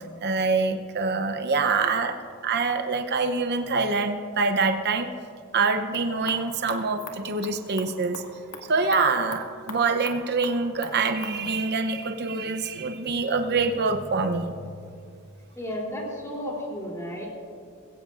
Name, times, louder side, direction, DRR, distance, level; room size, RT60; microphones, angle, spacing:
voice 1, 0.2-2.1 2.4-5.1 5.5-8.2 8.7-14.5, right 4 dB, 50° right, 6 dB, 0.7 m, -25 dB
sound 1, 5.7-11.4, left 3 dB, 75° left, 1.8 m, -43 dB
voice 2, 15.6-17.3, equal, 15° left, -2 dB, 3.1 m, -33 dB
21.0 x 16.5 x 2.5 m, 2.3 s
head